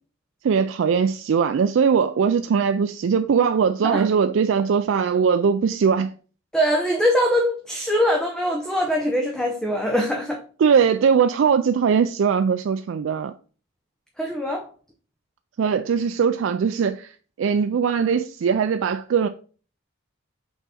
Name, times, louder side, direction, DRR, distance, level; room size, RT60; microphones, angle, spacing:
voice 1, 0.4-6.1 10.6-13.3 15.6-19.3, right 6 dB, 70° right, 0.3 m, -20 dB
voice 2, 6.5-10.4 14.2-14.7, equal, 5° left, 0.7 m, -22 dB
5.8 x 4.0 x 4.1 m
head